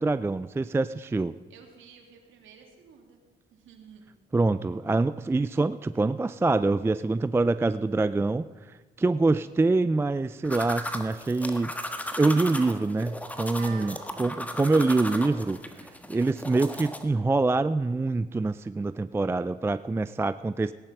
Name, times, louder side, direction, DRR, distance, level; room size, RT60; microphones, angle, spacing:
voice 1, 0.0-1.3 4.3-8.5 9.0-11.9 12.2-20.7, right 3 dB, 10° right, 14 dB, 0.3 m, -25 dB
voice 2, 1.5-3.2 3.5-4.0 13.6-14.4, right 6 dB, 80° right, 2 dB, 3.0 m, -48 dB
sound 1, 10.4-17.0, left 1 dB, 5° left, 1.4 m, -36 dB
18.0 x 10.5 x 6.0 m, 1.3 s
cardioid pair, 90°, 20 cm